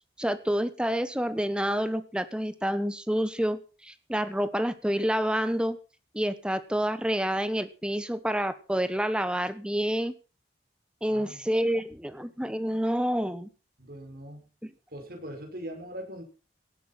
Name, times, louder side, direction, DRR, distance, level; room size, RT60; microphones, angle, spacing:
voice 1, 0.2-5.8 6.1-10.1 11.0-13.5 14.6-14.7, equal, 5° right, 12 dB, 1.1 m, -28 dB
voice 2, 11.1-11.4 13.8-14.5 14.9-16.2, equal, 55° right, 3 dB, 5.5 m, -41 dB
18.0 x 9.2 x 5.8 m, 0.35 s
head